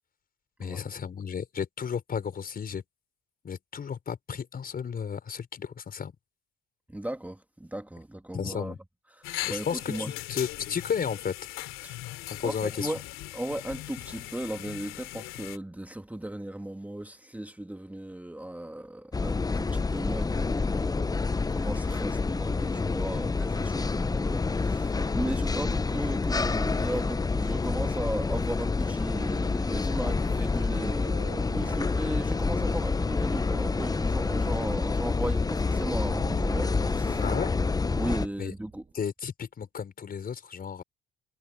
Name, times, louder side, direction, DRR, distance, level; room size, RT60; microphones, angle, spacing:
voice 1, 0.6-2.8 3.4-6.1 8.3-8.8 9.5-11.3 12.4-12.9 37.2-37.5 38.4-38.5 38.9-40.8, left 7 dB, 45° left, 5.8 m, -33 dB
voice 2, 6.9-8.7 9.1-10.1 11.8-13.0 13.3-37.3 37.9-38.8, right 1 dB, 5° right, 2.2 m, -36 dB
sound 1, 9.2-15.6, left 16 dB, 75° left, 2.7 m, -39 dB
sound 2, 19.1-38.3, left 4 dB, 20° left, 0.7 m, -28 dB
sound 3, 30.2-38.9, right 6 dB, 40° right, 4.8 m, -46 dB
supercardioid pair, 70°, 21 cm